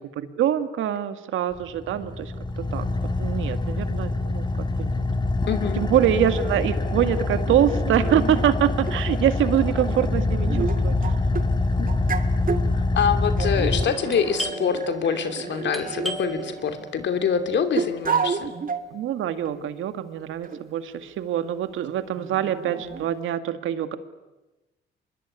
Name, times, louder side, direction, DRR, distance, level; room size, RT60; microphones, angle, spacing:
voice 1, 0.2-2.9 3.2-4.9 5.8-11.1 18.9-24.0, right 10 dB, 80° right, 10 dB, 2.0 m, -25 dB
Car / Idling, 1.5-14.5, left 2 dB, 20° left, 2.4 m, -25 dB
voice 2, 5.5-5.8 11.8-11.9 12.7-18.5, left 7 dB, 65° left, 8 dB, 2.9 m, -25 dB
sound 1, 6.1-6.2 7.0-8.5 8.9-9.0 9.9-11.5 11.9-12.7 13.4-16.9 17.8-18.9 19.5-19.6 20.4-20.6 22.2-23.1, right 6 dB, 45° right, 2.0 m, -31 dB
Doorbell, 14.1-19.5, equal, ahead, 3.5 m, -39 dB
25.5 x 21.5 x 9.8 m, 1.1 s
cardioid pair, 90°, 20 cm